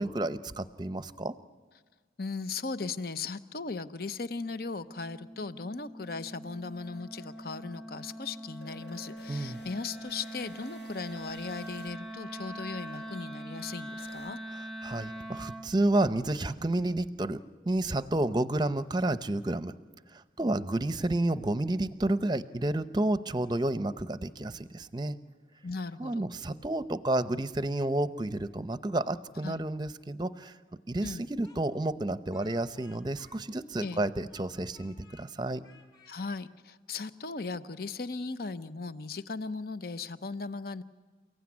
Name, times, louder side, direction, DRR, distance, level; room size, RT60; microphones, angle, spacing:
voice 1, 0.0-1.3 9.3-9.6 14.8-17.4 17.7-19.7 20.1-25.2 26.0-30.6 30.9-35.7, right 1 dB, 25° right, 13 dB, 0.7 m, -30 dB
voice 2, 2.2-14.4 25.6-26.3 29.4-29.6 31.0-31.3 33.8-34.0 36.1-40.8, left 4 dB, 55° left, 13 dB, 0.8 m, -37 dB
Wind instrument woodwind instrument, 4.2-15.7, right 1 dB, ahead, 1.1 m, -43 dB
sound 1, 5.3-14.3, left 1 dB, 75° left, 1.7 m, -56 dB
Speech, 31.4-34.0 34.3-35.3 35.6-36.4, left 4 dB, 20° left, 2.3 m, -59 dB
29.5 x 16.0 x 9.7 m, 1.4 s
head